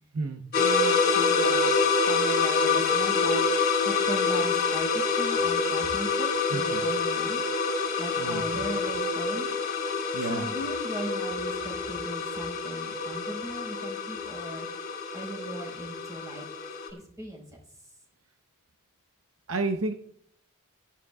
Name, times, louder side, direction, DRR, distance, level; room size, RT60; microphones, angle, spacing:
sound 1, 0.5-16.9, left 4 dB, 45° left, 4.6 m, -27 dB
voice 1, 0.6-1.7 2.1-3.4 3.8-7.4 8.0-9.5 10.2-14.7 15.1-16.4 16.9-17.4, right 1 dB, 15° right, -1 dB, 4.8 m, -38 dB
voice 2, 6.5-6.8 8.2-8.4 10.1-10.5 19.5-19.9, right 3 dB, 65° right, 6 dB, 0.8 m, -30 dB
17.0 x 11.0 x 2.4 m, 0.67 s
head